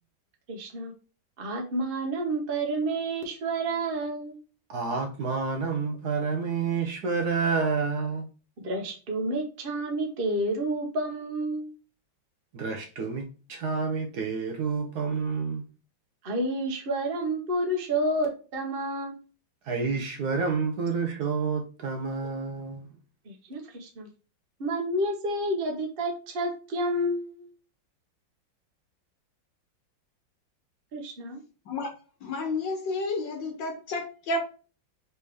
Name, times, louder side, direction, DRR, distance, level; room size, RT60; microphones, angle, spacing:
voice 1, 0.5-0.9 1.4-4.4 8.6-11.7 16.2-19.2 23.3-24.1 24.6-27.5 30.9-31.4, right 1 dB, 40° right, 0.9 m, -30 dB
voice 2, 4.7-8.3 12.5-15.6 19.7-22.9, right 5 dB, 65° right, 1.1 m, -29 dB
voice 3, 32.2-34.4, left 2 dB, 70° left, 1.5 m, -31 dB
4.2 x 3.4 x 3.3 m
omnidirectional pair, 2.1 m